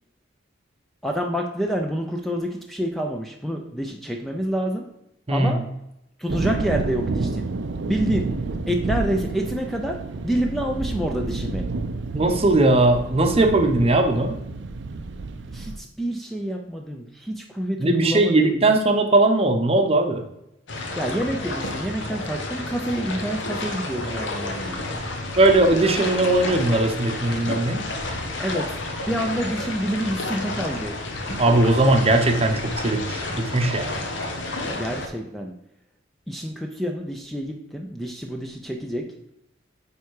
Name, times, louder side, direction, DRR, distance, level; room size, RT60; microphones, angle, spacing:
voice 1, 1.0-4.9 5.3-5.6 6.2-7.5 7.9-8.3 8.7-11.6 15.5-18.8 21.0-25.1 28.4-28.6 29.1-30.9 34.7-35.5 36.3-39.0, equal, ahead, 2 dB, 0.5 m, -28 dB
sound 1, 6.3-15.8, right 3 dB, 65° right, 0.5 m, -30 dB
voice 2, 12.1-14.3 17.8-20.2 25.3-27.9 31.4-34.0, right 2 dB, 30° right, 5 dB, 0.8 m, -19 dB
sound 2, 20.7-35.1, left 2 dB, 65° left, 1.0 m, -30 dB
9.1 x 3.4 x 4.7 m, 0.84 s
head